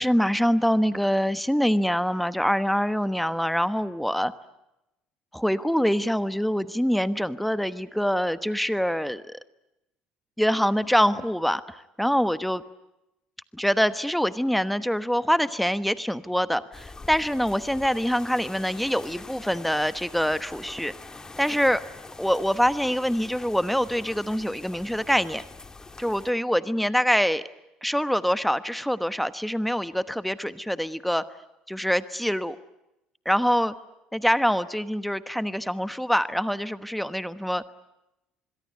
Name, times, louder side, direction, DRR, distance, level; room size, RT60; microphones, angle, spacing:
voice 1, 0.0-4.3 5.3-9.4 10.4-12.6 13.5-20.9 21.4-21.8 22.2-25.4 26.0-27.4 27.8-31.2 31.7-32.6 33.2-33.7 34.1-37.6, equal, ahead, 13 dB, 1.1 m, -25 dB
sound 1, 16.7-26.3, left 3 dB, 20° left, 2.0 m, -44 dB
26.5 x 22.0 x 9.5 m, 0.90 s
hypercardioid pair, 70°, 3 cm